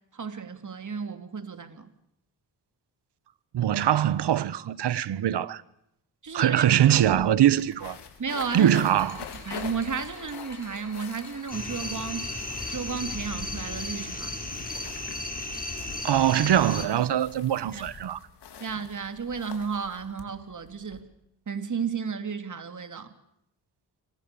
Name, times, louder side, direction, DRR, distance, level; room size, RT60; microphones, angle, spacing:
voice 1, 0.1-1.9 6.2-6.6 6.9-7.2 8.2-8.8 9.4-12.3 12.7-14.3 17.7-17.9 18.6-21.1 21.5-23.1, right 5 dB, 45° right, 3.2 m, -33 dB
voice 2, 3.5-5.6 6.3-8.0 8.5-9.2 16.0-18.2, right 11 dB, 80° right, 1.3 m, -22 dB
sound 1, 6.3-6.4 6.6-21.0, left 7 dB, 80° left, 4.5 m, -45 dB
sound 2, 8.4-13.8, left 4 dB, 40° left, 7.6 m, -47 dB
sound 3, 11.5-16.8, left 2 dB, 20° left, 7.1 m, -35 dB
29.0 x 26.0 x 7.1 m
cardioid pair, 70°, 41 cm